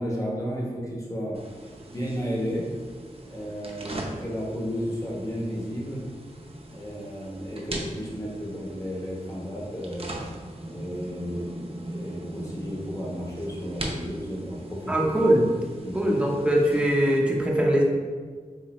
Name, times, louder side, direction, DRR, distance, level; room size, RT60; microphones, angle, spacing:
voice 1, 0.0-1.4 1.9-2.6 3.3-6.0 6.7-10.1 10.6-15.1 15.8-16.0, equal, 25° left, -3 dB, 1.0 m, -33 dB
sound 1, 1.3-17.2, right 1 dB, 45° right, 0.5 m, -40 dB
voice 2, 14.9-15.4 15.9-17.8, right 1 dB, 5° right, -2 dB, 0.7 m, -21 dB
3.9 x 2.6 x 3.0 m, 1.5 s
wide cardioid pair, 45°, 14 cm